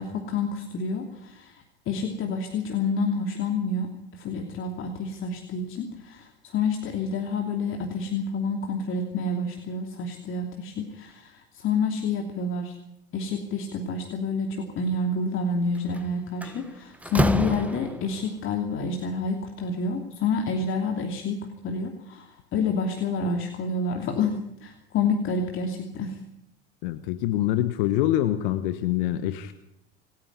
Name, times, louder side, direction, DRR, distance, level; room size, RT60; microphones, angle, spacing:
voice 1, 0.0-12.7 13.1-26.2, left 3 dB, 40° left, 3 dB, 2.9 m, -28 dB
Slam, 15.7-16.0 16.4-18.3, right 1 dB, 5° right, 1.4 m, -27 dB
voice 2, 26.8-29.5, left 13 dB, 60° left, 12 dB, 1.3 m, -25 dB
27.0 x 10.5 x 9.7 m, 0.80 s
figure-of-eight pair, 75°, 31 cm